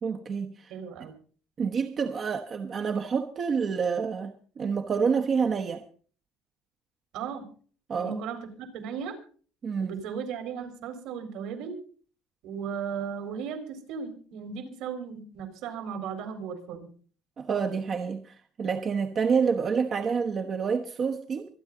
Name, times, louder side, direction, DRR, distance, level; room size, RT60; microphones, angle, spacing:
voice 1, 0.0-0.7 1.6-5.8 7.9-8.2 9.6-10.0 17.4-21.5, right 6 dB, 35° right, 1.1 m, -28 dB
voice 2, 0.7-1.1 7.1-7.4 8.0-9.2 9.8-11.8 12.4-16.9, right 6 dB, 70° right, 4.0 m, -36 dB
25.5 x 9.7 x 3.9 m
cardioid pair, 145°, 0 cm